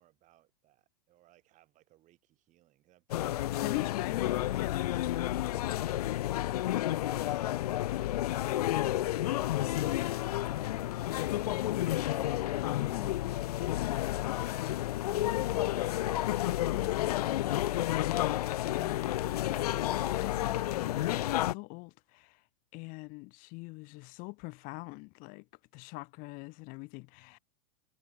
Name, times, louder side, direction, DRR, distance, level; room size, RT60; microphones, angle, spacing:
voice 1, 0.0-4.1 5.5-7.4 7.7-10.0, right 15 dB, 35° right, 5.0 m, -64 dB
sound 1, 3.1-21.5, left 14 dB, 70° left, 0.6 m, -31 dB
voice 2, 3.6-4.8 12.3-15.9 16.6-22.4 22.7-25.4 25.7-27.4, left 27 dB, 45° left, 1.2 m, -44 dB
hypercardioid pair, 110°, 20 cm